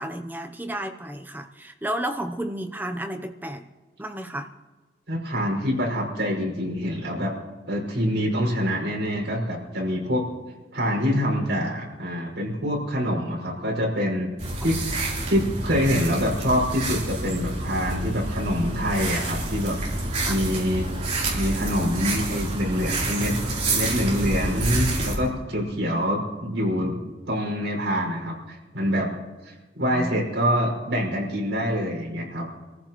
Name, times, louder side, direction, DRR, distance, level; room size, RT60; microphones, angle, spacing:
voice 1, 0.0-3.6 4.0-4.5 20.3-20.4 29.9-30.2, right 1 dB, 10° right, 6 dB, 0.7 m, -32 dB
voice 2, 5.1-7.3 7.7-10.3 10.7-14.3 14.6-14.8 15.3-20.9 21.3-23.3 23.7-26.9 27.3-29.1 29.4-32.5, equal, 75° right, -2 dB, 5.7 m, -25 dB
sound 1, 14.4-25.1, right 2 dB, 40° right, 3.7 m, -28 dB
26.5 x 15.0 x 3.1 m, 1.2 s
head